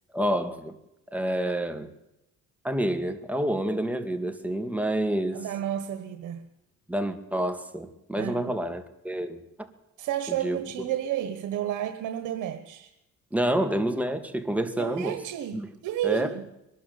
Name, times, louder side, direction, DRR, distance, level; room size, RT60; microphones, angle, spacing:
voice 1, 0.1-0.7 1.1-1.9 2.6-5.4 6.9-9.4 10.3-10.6 13.3-15.2 15.5-15.7 16.0-16.4, right 1 dB, 5° right, 2.3 m, -28 dB
voice 2, 5.3-6.4 8.2-8.5 10.0-12.9 14.8-16.5, right 11 dB, 90° right, 1.4 m, -31 dB
22.0 x 12.5 x 9.6 m
cardioid pair, 90°, 30 cm